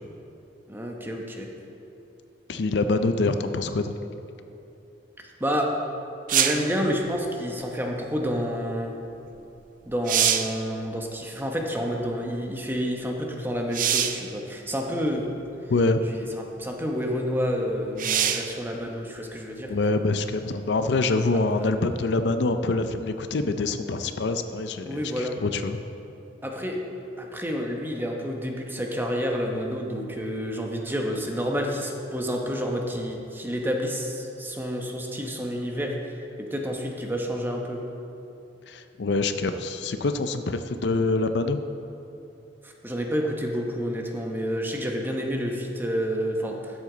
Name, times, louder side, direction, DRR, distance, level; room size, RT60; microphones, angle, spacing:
voice 1, 0.7-1.5 5.4-5.7 6.3-8.9 9.9-15.3 16.1-19.7 21.5-21.7 24.8-25.4 26.4-26.8 27.2-37.8 42.6-46.8, equal, 10° right, 1 dB, 1.0 m, -29 dB
voice 2, 2.5-3.9 15.7-16.0 19.7-25.8 38.7-41.6, left 3 dB, 75° left, 9 dB, 0.5 m, -25 dB
sound 1, 6.3-6.7 9.4-9.5 9.9-10.6 13.7-14.3 15.3-15.4 18.0-18.6 22.1-22.2, right 9 dB, 50° right, 0.5 m, -24 dB
13.0 x 8.0 x 3.9 m, 2.8 s
head